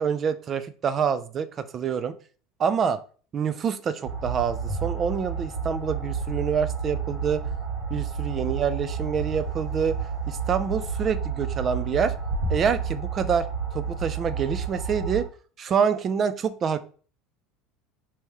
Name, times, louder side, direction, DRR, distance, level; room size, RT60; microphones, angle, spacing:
voice 1, 0.0-2.1 2.6-3.0 3.3-7.5 7.9-10.0 10.3-12.1 12.5-13.5 13.7-15.3 15.6-16.8, right 7 dB, 35° right, 13 dB, 0.4 m, -26 dB
sound 1, 4.0-15.3, right 5 dB, 50° right, 1.4 m, -30 dB
3.1 x 2.8 x 3.4 m, 0.40 s
supercardioid pair, 120°, 0 cm